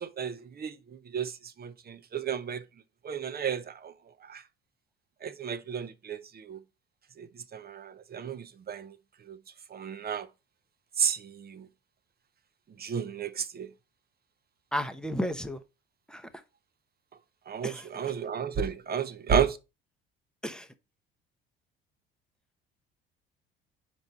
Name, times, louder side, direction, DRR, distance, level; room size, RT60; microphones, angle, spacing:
voice 1, 0.0-0.7 1.1-1.3 1.6-2.6 3.0-3.9 4.3-4.4 5.2-6.2 6.5-6.6 7.5-8.9 9.3-9.4 9.7-10.3 11.0-11.2 11.5-11.6 12.8-13.7 17.5-19.6, right 7 dB, 30° right, 0.8 m, -32 dB
voice 2, 14.7-15.6 16.1-16.3 17.6-17.9 20.4-20.7, equal, 5° left, 0.9 m, -33 dB
5.2 x 4.6 x 5.5 m
hypercardioid pair, 60°, 29 cm